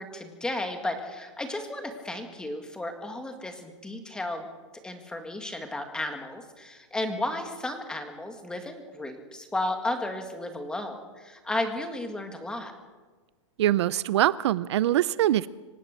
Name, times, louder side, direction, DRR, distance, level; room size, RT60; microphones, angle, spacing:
voice 1, 0.0-4.5 4.8-12.7, left 1 dB, 5° left, 5 dB, 1.9 m, -33 dB
voice 2, 13.6-15.5, right 13 dB, 60° right, 18 dB, 0.6 m, -23 dB
25.0 x 18.5 x 6.6 m, 1.3 s
supercardioid pair, 170°, 16 cm